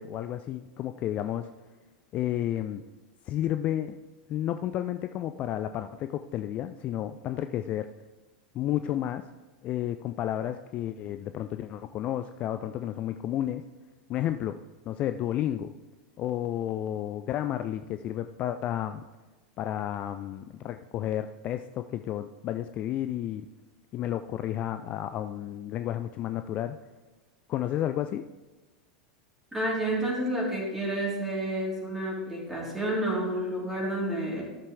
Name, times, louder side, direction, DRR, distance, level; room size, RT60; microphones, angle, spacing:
voice 1, 0.0-1.5 2.1-2.8 3.3-4.0 4.3-7.9 8.5-9.2 9.6-13.6 14.1-14.6 14.9-15.7 16.2-19.0 19.6-23.5 23.9-26.8 27.5-28.3, left 11 dB, 35° left, 9 dB, 0.3 m, -31 dB
voice 2, 29.5-34.4, right 1 dB, 5° right, -5 dB, 3.5 m, -30 dB
13.5 x 6.6 x 3.3 m, 1.2 s
figure-of-eight pair, 90°, 4 cm